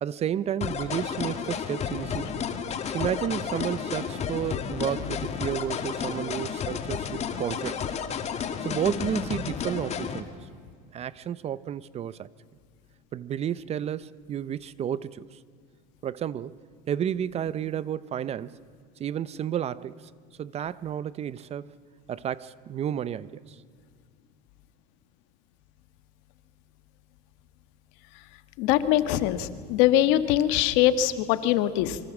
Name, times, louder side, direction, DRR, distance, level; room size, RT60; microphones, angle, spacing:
voice 1, 0.0-2.3 2.9-7.8 8.6-10.4 10.9-12.3 13.1-15.4 16.0-16.6 16.9-18.6 19.0-20.1 20.4-21.7 22.1-23.6, right 9 dB, 30° right, 0.6 m, -31 dB
sound 1, 0.6-10.2, left 7 dB, 30° left, 2.1 m, -32 dB
voice 2, 28.6-32.0, left 12 dB, 65° left, 1.6 m, -22 dB
25.5 x 24.0 x 7.2 m
supercardioid pair, 130°, 21 cm